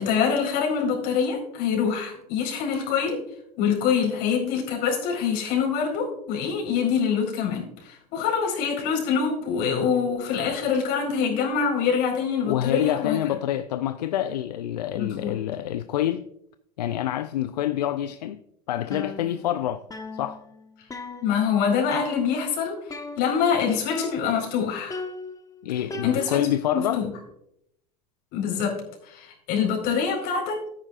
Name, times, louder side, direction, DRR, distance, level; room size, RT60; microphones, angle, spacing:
voice 1, 0.0-3.2 3.6-13.2 14.9-15.3 21.2-25.0 26.0-26.4 26.7-27.1 28.3-28.8 29.0-30.6, left 6 dB, 55° left, 4.5 m, -25 dB
voice 2, 12.4-16.2 16.8-18.4 18.7-19.8 20.1-20.4 25.6-27.0, left 12 dB, 80° left, 0.5 m, -27 dB
sound 1, 18.9-19.6 19.9-21.6 21.9-22.5 22.9-23.6 23.9-24.5 24.9-26.6, left 3 dB, 15° left, 1.3 m, -37 dB
13.5 x 10.0 x 2.5 m
hypercardioid pair, 90°, 21 cm